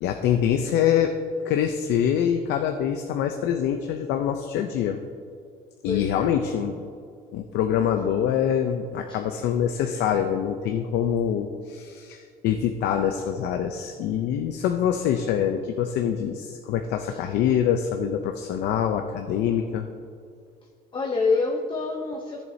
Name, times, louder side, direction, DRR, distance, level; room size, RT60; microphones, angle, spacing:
voice 1, 0.0-1.2 1.4-5.0 5.8-6.8 7.3-19.9, left 9 dB, 80° left, 6 dB, 0.6 m, -25 dB
voice 2, 5.8-6.3 9.1-9.2 17.0-17.3 20.9-22.4, left 4 dB, 30° left, 1 dB, 0.8 m, -27 dB
13.5 x 7.4 x 2.7 m, 2.3 s
cardioid pair, 110°, 17 cm